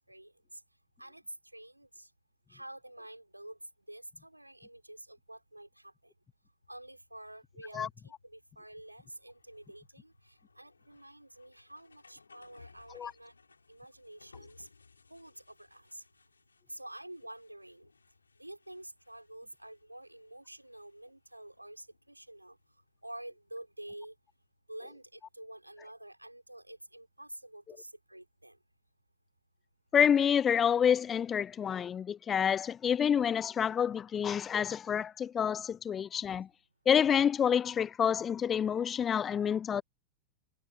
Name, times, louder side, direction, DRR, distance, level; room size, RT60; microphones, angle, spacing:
voice 1, 0.1-0.6 1.0-2.1 2.5-3.6 3.9-6.1 6.7-13.4 13.7-14.7 15.1-16.0 16.7-17.9 18.4-22.6 23.0-24.1 24.7-28.6, right 1 dB, 85° right, 4.9 m, -49 dB
sound 1, 6.6-24.6, left 4 dB, 75° left, 4.2 m, -64 dB
voice 2, 29.9-36.5 36.9-39.8, left 8 dB, 25° left, 0.4 m, -28 dB
figure-of-eight pair, 90°, 0 cm